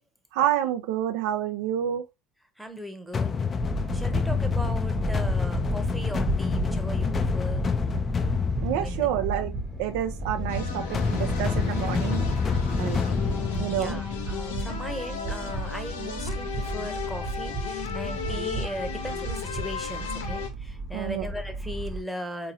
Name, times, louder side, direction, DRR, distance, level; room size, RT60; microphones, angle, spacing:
voice 1, 0.3-2.0 8.6-9.5 9.8-13.0 13.6-14.0 20.9-21.3, right 11 dB, 70° right, 0.4 m, -28 dB
voice 2, 2.6-3.3 3.9-7.7 8.8-9.1 13.7-22.5, equal, ahead, 0.9 m, -38 dB
sound 1, 3.1-15.0, left 5 dB, 30° left, 0.4 m, -28 dB
sound 2, 3.6-22.0, right 2 dB, 30° right, 0.9 m, -33 dB
sound 3, 10.5-20.5, left 6 dB, 85° left, 0.8 m, -35 dB
3.6 x 3.0 x 2.7 m
hypercardioid pair, 75°, 0 cm